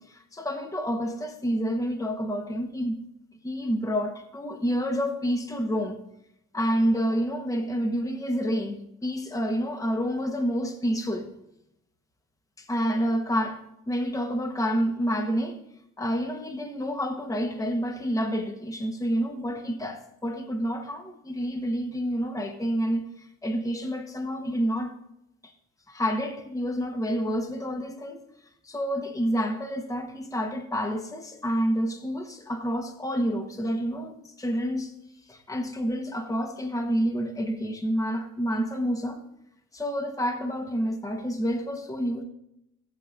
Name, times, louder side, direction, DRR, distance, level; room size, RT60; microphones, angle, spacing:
voice 1, 0.0-3.0 3.4-6.0 6.5-11.3 12.6-13.6 13.9-15.6 16.0-24.9 25.4-25.5 25.9-28.2 28.6-34.9 35.3-39.2 39.7-42.2, equal, 10° left, 1.0 m, -28 dB
14.5 x 8.7 x 2.5 m
cardioid pair, 75°, 34 cm